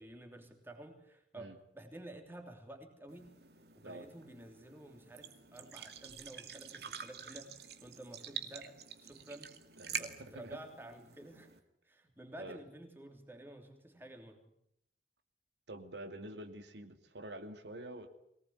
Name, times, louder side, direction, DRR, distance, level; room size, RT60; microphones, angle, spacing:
voice 1, 0.0-3.4 3.8-9.5 10.0-11.5 11.8-14.4, right 1 dB, 15° right, 4 dB, 3.1 m, -51 dB
sound 1, 3.1-11.6, right 7 dB, 70° right, 2.2 m, -47 dB
voice 2, 9.8-10.6 12.4-12.6 15.7-18.1, right 1 dB, 85° right, 7 dB, 2.5 m, -47 dB
23.5 x 19.0 x 9.7 m, 0.75 s
head